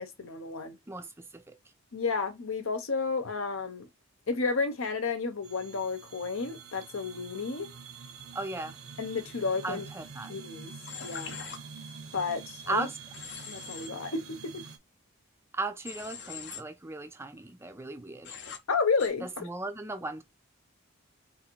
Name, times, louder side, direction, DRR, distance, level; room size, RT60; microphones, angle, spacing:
voice 1, 0.0-0.8 1.9-3.9 4.3-7.7 9.0-9.8 10.3-10.7 11.0-11.4 12.1-12.9 13.5-14.5 18.7-19.4, left 4 dB, 75° left, 0.9 m, -31 dB
voice 2, 0.9-1.6 8.3-8.8 9.6-10.3 12.7-13.0 15.5-18.4 19.2-20.2, right 3 dB, 10° right, 0.4 m, -36 dB
sound 1, 5.4-14.8, right 5 dB, 75° right, 0.8 m, -47 dB
Human voice / Train, 10.9-11.6 13.1-13.9 15.9-16.6 18.2-18.6 19.0-19.1, left 7 dB, 55° left, 0.7 m, -42 dB
3.5 x 2.6 x 4.5 m
head